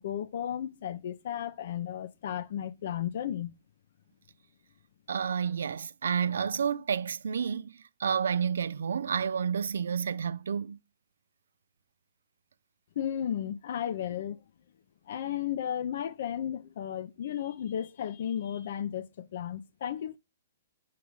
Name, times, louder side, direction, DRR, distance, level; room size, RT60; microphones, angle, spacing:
voice 1, 0.0-3.5 13.0-14.4 15.1-20.2, left 10 dB, 60° left, 0.7 m, -34 dB
voice 2, 5.1-10.8, right 7 dB, 80° right, 0.4 m, -30 dB
4.8 x 4.8 x 5.3 m
hypercardioid pair, 135°, 0 cm